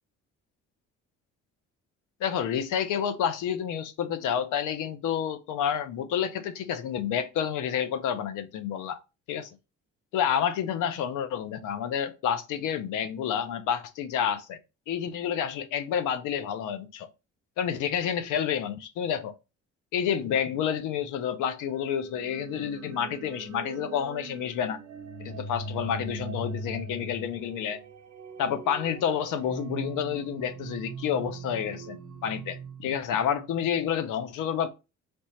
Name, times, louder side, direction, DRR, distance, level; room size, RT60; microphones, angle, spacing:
voice 1, 2.2-9.0 9.3-9.5 10.1-14.6 14.9-17.1 17.6-19.3 19.9-24.8 25.2-27.8 28.4-34.7, left 8 dB, 90° left, 0.6 m, -29 dB
sound 1, 21.7-33.6, right 3 dB, 65° right, 0.8 m, -40 dB
4.3 x 3.3 x 3.1 m
cardioid pair, 90°, 30 cm